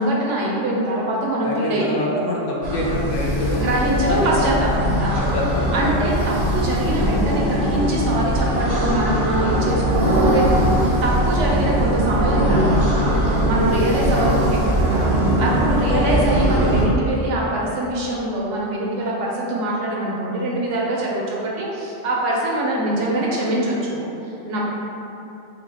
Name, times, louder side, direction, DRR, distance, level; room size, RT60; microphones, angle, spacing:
voice 1, 0.0-2.1 3.5-5.2 5.7-24.6, right 1 dB, 75° right, -4 dB, 1.0 m, -23 dB
voice 2, 1.4-3.7 4.0-4.3 5.2-6.0 15.9-16.1, left 1 dB, 85° left, -3 dB, 1.0 m, -26 dB
sound 1, 2.6-16.9, equal, 55° right, 0.4 m, -20 dB
sound 2, 3.1-15.1, left 1 dB, 60° left, 0.7 m, -33 dB
4.0 x 2.3 x 3.4 m, 2.9 s
omnidirectional pair, 1.3 m